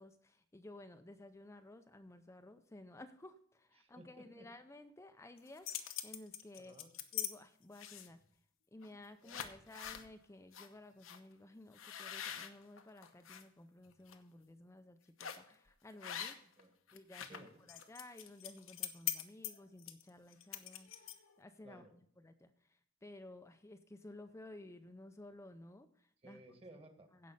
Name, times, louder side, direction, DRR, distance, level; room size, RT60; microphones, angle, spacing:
voice 1, 0.0-6.7 7.1-8.2 8.7-16.4 16.9-26.4 27.2-27.3, left 1 dB, 15° left, 8 dB, 0.5 m, -55 dB
voice 2, 3.8-4.5 6.5-6.9 9.2-9.5 16.4-16.7 17.2-17.5 21.6-21.9 26.2-27.1, right 2 dB, 30° right, 5 dB, 1.6 m, -58 dB
sound 1, 5.4-7.3 7.7-8.2 8.8-9.0 9.3-10.1 10.5-10.7 11.0-11.2 11.7-13.4 13.9-14.1 15.2-15.5 16.0-16.6 16.9-21.4, left 10 dB, 75° left, 0.9 m, -43 dB
16.0 x 5.5 x 5.4 m, 0.62 s
head